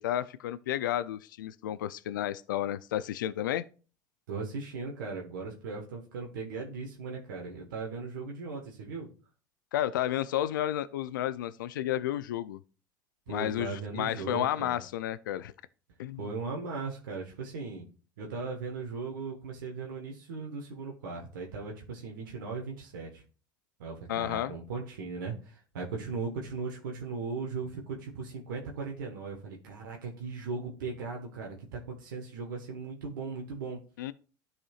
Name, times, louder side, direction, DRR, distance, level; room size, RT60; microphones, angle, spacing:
voice 1, 0.0-3.6 9.7-12.6 13.3-15.5 16.0-16.2 24.1-24.5 34.0-34.1, left 12 dB, 90° left, 0.4 m, -32 dB
voice 2, 4.3-9.1 13.3-14.8 16.2-17.8 18.2-23.2 23.8-33.8, right 4 dB, 85° right, 1.3 m, -38 dB
12.5 x 4.2 x 2.4 m
hypercardioid pair, 80°, 10 cm